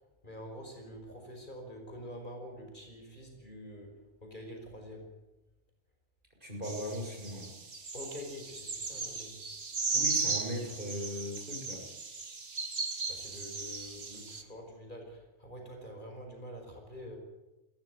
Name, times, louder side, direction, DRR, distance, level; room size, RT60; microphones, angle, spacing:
voice 1, 0.2-5.1 7.9-9.5 13.1-17.2, equal, 45° left, 3 dB, 5.7 m, -46 dB
voice 2, 6.4-7.5 9.9-11.8, equal, 45° right, 1 dB, 7.2 m, -38 dB
sound 1, 6.6-14.4, right 4 dB, 80° right, 2.3 m, -36 dB
21.5 x 16.0 x 9.6 m, 1.1 s
omnidirectional pair, 1.2 m